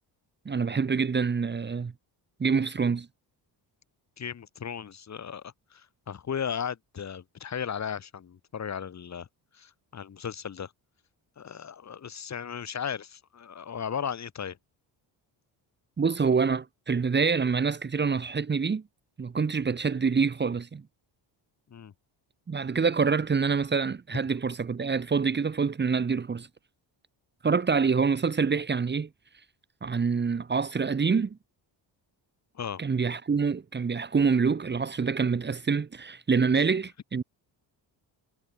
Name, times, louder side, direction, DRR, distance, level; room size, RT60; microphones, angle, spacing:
voice 1, 0.5-1.9 2.4-3.1 16.0-18.8 19.2-20.8 22.5-26.5 27.4-29.1 29.8-31.4 32.8-37.2, right 5 dB, 25° right, 2.1 m, -26 dB
voice 2, 4.2-9.3 9.5-10.7 11.4-14.6 21.7-21.9 32.5-32.8, left 7 dB, 40° left, 4.9 m, -36 dB
cardioid pair, 170°, 44 cm